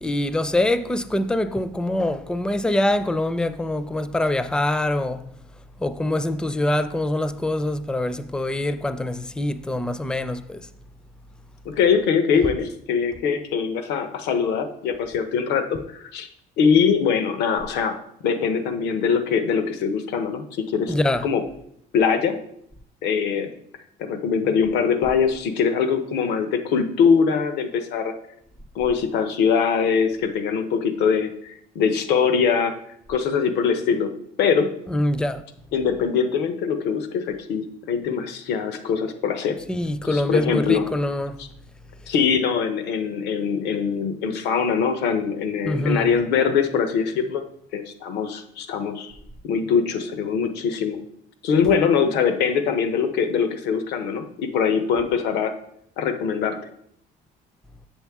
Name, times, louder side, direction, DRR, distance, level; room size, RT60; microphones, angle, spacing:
voice 1, 0.0-5.3 5.8-10.7 20.9-21.3 34.9-35.4 39.7-41.4 45.6-46.1, left 1 dB, 5° left, 0.4 m, -24 dB
voice 2, 11.6-16.3 16.6-18.0 18.2-20.9 21.2-21.4 21.9-22.4 23.0-23.5 24.0-28.1 28.7-32.8 33.1-34.1 34.4-34.7 35.7-39.6 40.0-40.9 41.4-41.5 42.1-47.4 47.7-49.2 49.4-51.0 51.4-55.5 56.0-56.7, left 6 dB, 85° left, 0.8 m, -22 dB
7.5 x 7.1 x 3.5 m
cardioid pair, 110°, 17 cm